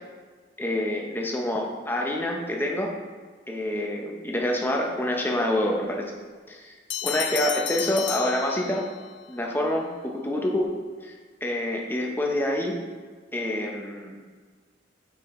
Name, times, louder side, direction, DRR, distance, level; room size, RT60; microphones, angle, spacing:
voice 1, 0.6-2.9 3.5-6.1 6.5-6.7 7.0-8.8 9.3-10.7 11.0-11.1 11.4-12.8 13.3-14.1, left 1 dB, 10° left, 0 dB, 0.7 m, -27 dB
Bell, 6.9-9.1, left 11 dB, 75° left, 0.5 m, -32 dB
6.2 x 5.0 x 3.6 m, 1.5 s
head